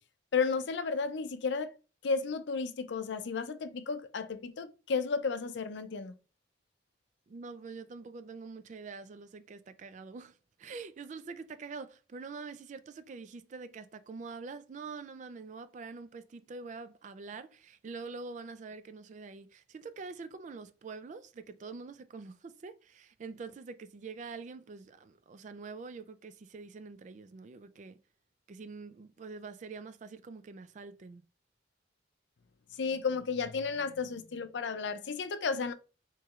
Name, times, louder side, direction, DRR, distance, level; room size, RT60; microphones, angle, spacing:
voice 1, 0.3-1.7 2.0-6.1 32.8-35.7, left 5 dB, 70° left, 0.5 m, -33 dB
voice 2, 7.3-28.0 28.5-31.3, right 4 dB, 40° right, 0.3 m, -45 dB
4.4 x 3.0 x 2.4 m
head